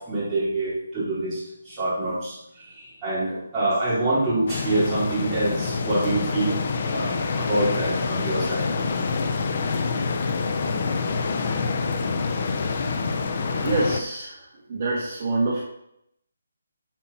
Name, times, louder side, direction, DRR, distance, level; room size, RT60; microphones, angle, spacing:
voice 1, 0.0-8.7, right 2 dB, 10° right, -12 dB, 4.4 m, -26 dB
sound 1, 4.5-14.0, left 4 dB, 35° left, 0.9 m, -26 dB
voice 2, 13.6-14.4 14.7-15.6, right 3 dB, 30° right, -5 dB, 1.9 m, -25 dB
12.0 x 5.7 x 4.4 m, 0.77 s
hypercardioid pair, 175°, 0 cm